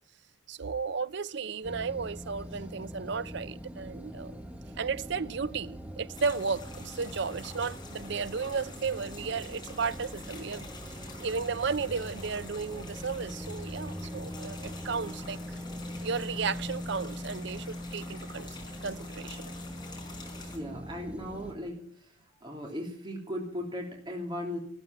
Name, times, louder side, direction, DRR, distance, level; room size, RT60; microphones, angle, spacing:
voice 1, 0.5-4.4 4.8-15.6 16.0-19.5, right 5 dB, 60° right, 0.6 m, -34 dB
sound 1, 1.6-21.5, equal, 5° right, 1.1 m, -42 dB
sound 2, 6.1-20.6, left 3 dB, 20° left, 4.6 m, -48 dB
voice 2, 20.5-21.8 22.4-24.6, left 1 dB, 25° right, 2.9 m, -37 dB
13.5 x 13.5 x 7.1 m
head